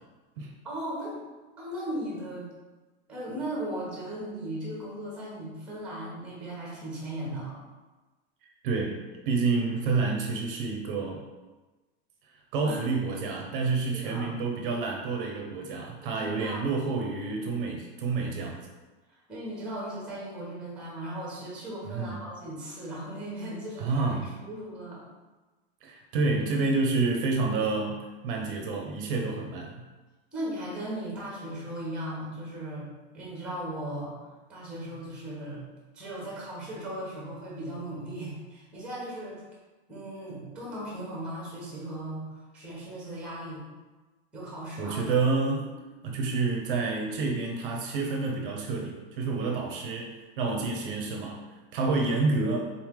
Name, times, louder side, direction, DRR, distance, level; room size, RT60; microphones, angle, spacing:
voice 1, 0.6-1.2 1.6-2.5 3.1-7.6 12.6-12.8 13.8-14.3 16.0-16.8 19.3-25.0 30.3-32.9 33.1-34.1 34.5-35.6 35.9-39.4 39.9-43.7 44.3-45.0 50.4-50.8, right 1 dB, 5° right, -5 dB, 0.9 m, -37 dB
voice 2, 8.6-9.0 9.3-11.2 12.5-18.7 21.9-22.2 23.8-24.3 25.8-29.8 44.8-45.7 46.0-52.7, right 3 dB, 55° right, 1 dB, 0.6 m, -29 dB
3.9 x 3.1 x 3.6 m, 1.2 s
supercardioid pair, 175°, 32 cm